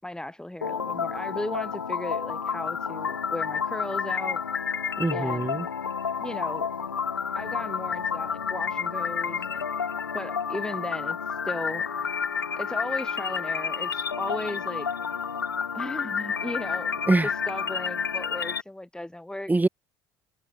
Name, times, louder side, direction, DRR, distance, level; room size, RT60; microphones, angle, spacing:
voice 1, 0.0-4.4 5.1-5.5 6.2-6.7 7.3-9.6 10.1-11.8 12.6-14.9 15.7-17.0 17.2-19.5, left 1 dB, 5° left, 4.3 m, -36 dB
sound 1, 0.6-18.6, left 6 dB, 90° left, 7.2 m, -30 dB
voice 2, 5.0-5.7 17.1-17.3 19.5-19.7, right 2 dB, 15° right, 7.5 m, -23 dB
hypercardioid pair, 60°, 11 cm